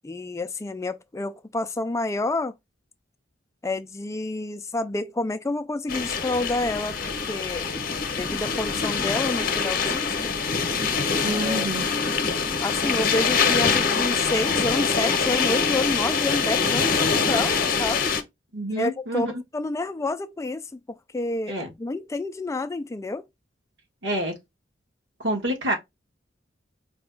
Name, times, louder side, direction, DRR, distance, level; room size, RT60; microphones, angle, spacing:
voice 1, 0.0-2.5 3.6-7.7 8.1-10.3 11.3-11.9 12.6-18.1 18.7-20.8 21.1-23.2, left 2 dB, 15° left, 0.3 m, -29 dB
sound 1, 5.9-18.2, left 5 dB, 50° left, 0.8 m, -24 dB
voice 2, 11.2-11.9 18.5-19.4 21.5-21.7 24.0-24.3 25.2-25.8, right 1 dB, 75° right, 1.5 m, -27 dB
4.8 x 2.3 x 3.6 m
head